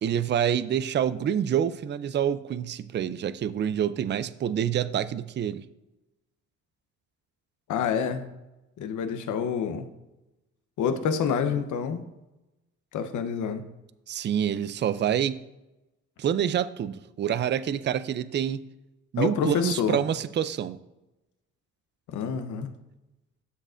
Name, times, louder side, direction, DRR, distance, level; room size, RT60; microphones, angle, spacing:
voice 1, 0.0-5.6 14.1-15.4 16.2-18.6 19.1-20.8, right 9 dB, 35° right, 15 dB, 0.4 m, -27 dB
voice 2, 7.7-8.2 8.8-9.9 10.8-12.0 12.9-13.6 19.2-20.0 22.1-22.7, left 7 dB, 75° left, 8 dB, 0.9 m, -27 dB
12.5 x 6.5 x 2.5 m, 1.0 s
cardioid pair, 90°, 30 cm